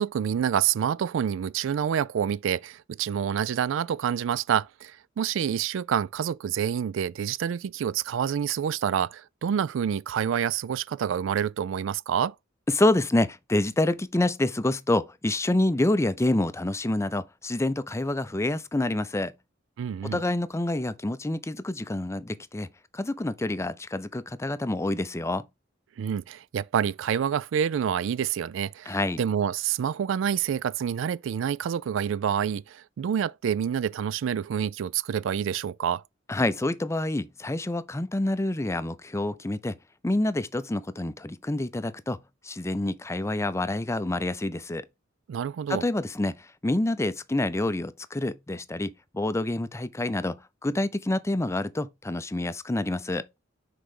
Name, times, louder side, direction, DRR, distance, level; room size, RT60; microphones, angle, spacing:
voice 1, 0.0-12.3 19.8-20.2 26.0-36.0 45.3-45.8, right 8 dB, 70° right, 0.3 m, -27 dB
voice 2, 12.7-19.3 20.0-22.7 22.9-25.4 28.9-29.2 36.3-39.8 40.0-42.2 42.4-44.9 45.7-53.3, left 1 dB, 15° left, 0.5 m, -27 dB
6.4 x 4.6 x 3.7 m
head